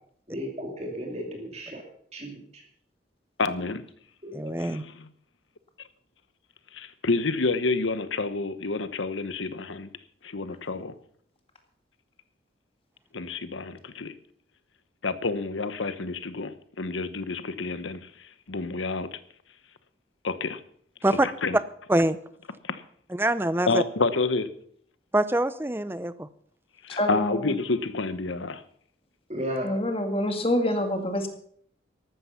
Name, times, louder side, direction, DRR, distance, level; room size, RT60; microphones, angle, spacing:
voice 1, 0.3-1.8 2.1-2.6 4.2-4.5 29.3-29.7, equal, 35° right, 2 dB, 2.5 m, -34 dB
voice 2, 3.4-3.8 4.6-4.9 6.7-9.9 10.2-11.0 13.1-14.1 15.0-19.2 20.2-20.6 21.1-21.6 22.6-22.8 23.7-24.5 26.8-28.6, left 3 dB, 90° left, 13 dB, 1.0 m, -29 dB
voice 3, 4.3-4.8 21.0-21.3 21.5-21.6 21.9-22.2 23.1-23.8 25.1-26.3, right 1 dB, 10° right, 15 dB, 0.5 m, -24 dB
voice 4, 26.9-27.5 29.6-31.3, left 1 dB, 30° left, 5 dB, 2.0 m, -26 dB
14.0 x 12.0 x 5.7 m, 0.62 s
head